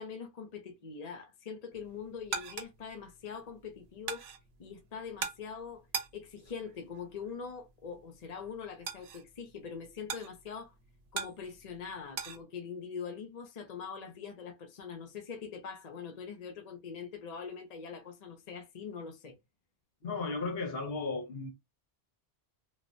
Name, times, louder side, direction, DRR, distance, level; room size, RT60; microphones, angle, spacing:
voice 1, 0.0-4.3 4.6-5.9 6.1-10.7 11.1-19.4, left 6 dB, 45° left, 0.7 m, -43 dB
sound 1, 1.7-12.4, right 6 dB, 75° right, 0.9 m, -43 dB
voice 2, 20.0-21.5, left 3 dB, 65° left, 1.1 m, -35 dB
3.1 x 2.1 x 2.5 m
omnidirectional pair, 1.1 m